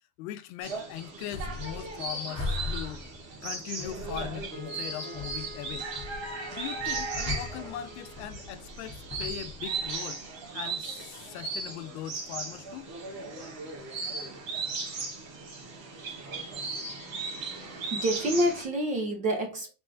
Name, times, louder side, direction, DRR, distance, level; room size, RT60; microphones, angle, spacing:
voice 1, 0.2-3.0 3.4-5.9 6.5-10.2 10.5-12.9, left 12 dB, 80° left, 0.7 m, -40 dB
sound 1, 0.6-18.6, right 4 dB, 70° right, 1.8 m, -37 dB
sound 2, 1.3-2.1 2.3-3.4 3.8-4.6 5.2-10.2, left 3 dB, 15° left, 1.4 m, -39 dB
Wind instrument woodwind instrument, 4.5-8.5, left 2 dB, 85° right, 2.0 m, -48 dB
voice 2, 16.1-17.2 17.6-19.7, equal, 20° right, 0.4 m, -30 dB
3.6 x 3.5 x 3.3 m
cardioid pair, 170°, 43 cm